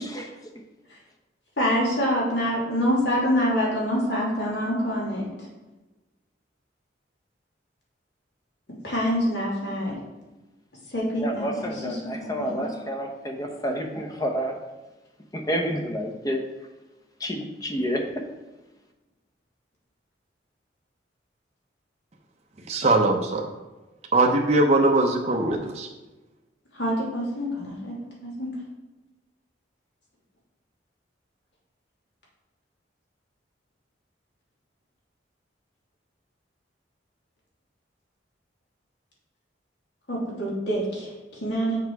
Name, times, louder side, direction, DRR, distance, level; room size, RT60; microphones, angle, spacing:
voice 1, 1.6-5.3 8.8-10.0 10.9-12.7 26.7-27.9 28.2-28.5 40.1-41.8, equal, 70° left, -5 dB, 2.7 m, -26 dB
voice 2, 11.2-14.6 15.3-16.4 17.2-18.2, equal, 20° left, 3 dB, 0.9 m, -29 dB
voice 3, 22.7-23.5 24.1-25.9, right 2 dB, 35° right, 1 dB, 0.7 m, -21 dB
6.6 x 5.7 x 4.7 m, 1.1 s
head